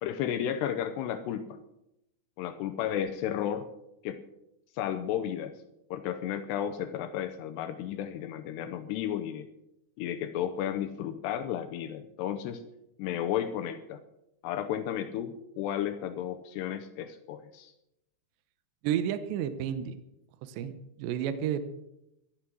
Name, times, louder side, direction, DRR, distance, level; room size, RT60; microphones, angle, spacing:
voice 1, 0.0-1.6 2.4-3.7 4.0-4.2 4.8-5.5 5.9-9.5 10.0-12.6 13.0-14.0 14.4-17.7, left 10 dB, 80° left, 9 dB, 2.8 m, -33 dB
voice 2, 18.8-20.0 20.4-20.7 21.0-21.6, right 10 dB, 80° right, 11 dB, 3.0 m, -31 dB
15.0 x 11.5 x 6.2 m, 0.84 s
omnidirectional pair, 5.0 m